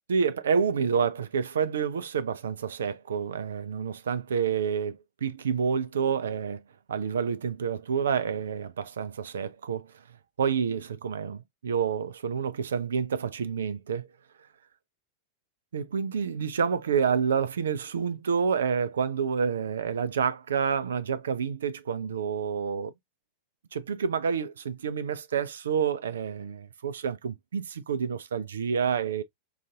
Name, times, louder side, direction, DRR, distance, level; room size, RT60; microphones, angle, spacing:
voice 1, 0.1-6.6 6.9-9.9 10.4-14.1 15.7-22.9 23.7-29.2, right 6 dB, 65° right, 0.4 m, -28 dB
4.8 x 2.6 x 2.3 m
figure-of-eight pair, 90°, 0 cm